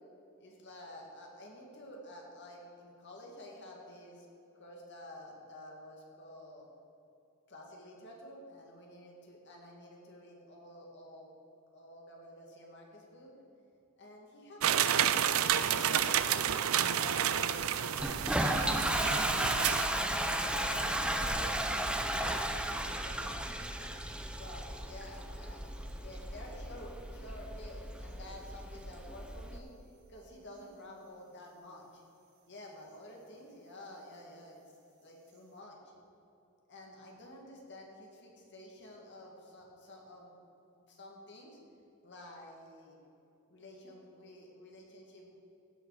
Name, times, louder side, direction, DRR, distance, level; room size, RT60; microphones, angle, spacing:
voice 1, 0.4-4.3 4.5-6.7 7.5-11.3 11.7-13.3 14.0-17.9 18.5-19.1 20.1-21.6 22.5-23.9 24.4-29.7 30.1-32.0 32.5-34.6 35.0-35.8 36.7-40.3 40.7-41.6 42.0-43.0 43.5-45.3, left 1 dB, 55° left, -1 dB, 2.2 m, -50 dB
sound 1, 14.6-19.9, right 9 dB, 75° right, 0.5 m, -30 dB
Toilet flush, 18.0-29.6, right 1 dB, 5° right, 0.6 m, -34 dB
sound 2, 20.4-35.6, equal, 55° right, 1.6 m, -56 dB
16.0 x 7.1 x 5.0 m, 2.8 s
head